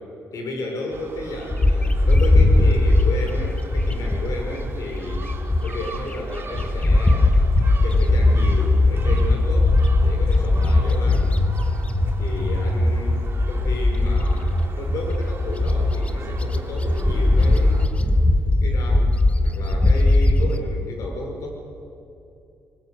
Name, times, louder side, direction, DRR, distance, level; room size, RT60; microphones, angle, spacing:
voice 1, 0.3-5.3 5.6-7.3 7.8-11.3 12.2-17.9 18.6-19.2 19.4-21.5, left 2 dB, 70° left, 2 dB, 5.8 m, -32 dB
Gull seagull, 0.9-17.9, right 3 dB, 45° right, 3.3 m, -38 dB
Bird, 1.5-6.0 6.4-20.6, left 2 dB, 20° left, 1.4 m, -19 dB
22.0 x 20.0 x 8.1 m, 2.6 s
cardioid pair, 80°, 6 cm